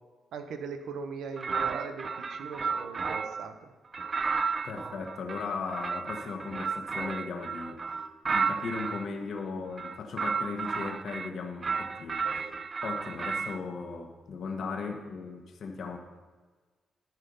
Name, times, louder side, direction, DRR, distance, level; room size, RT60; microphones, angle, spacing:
voice 1, 0.3-3.7, right 5 dB, 85° right, 7 dB, 0.8 m, -40 dB
sound 1, 1.4-3.5 3.9-9.0 9.7-11.3 11.6-13.6, right 5 dB, 35° right, 0.3 m, -33 dB
voice 2, 4.6-12.5 12.8-16.0, left 4 dB, 60° left, 4 dB, 1.3 m, -37 dB
12.5 x 5.6 x 5.5 m, 1.4 s
cardioid pair, 130°, 0 cm